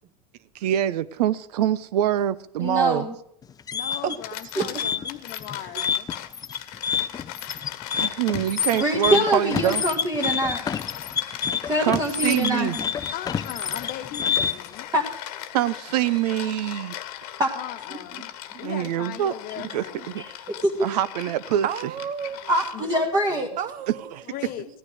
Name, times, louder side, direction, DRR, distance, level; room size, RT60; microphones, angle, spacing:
voice 1, 0.5-3.1 7.9-9.8 11.8-12.8 15.5-17.0 18.6-19.8 20.1-20.2 20.8-21.7 23.5-23.6 24.1-24.2, right 11 dB, 80° right, 0.7 m, -25 dB
voice 2, 2.6-3.1 8.8-10.6 11.7-12.8 14.9-15.0 17.4-17.5 20.6-20.9 22.5-23.5, equal, 15° right, 1.7 m, -24 dB
sound 1, 3.4-14.7, left 7 dB, 20° left, 0.4 m, -28 dB
voice 3, 3.7-6.1 13.1-14.9 17.5-18.3 18.6-20.2 22.7-22.8 24.3-24.7, left 12 dB, 45° left, 1.1 m, -38 dB
sound 2, 4.0-23.1, left 12 dB, 70° left, 1.3 m, -39 dB
voice 4, 21.6-22.5 23.6-24.1, right 8 dB, 40° right, 1.2 m, -32 dB
14.5 x 9.7 x 6.4 m
supercardioid pair, 110°, 20 cm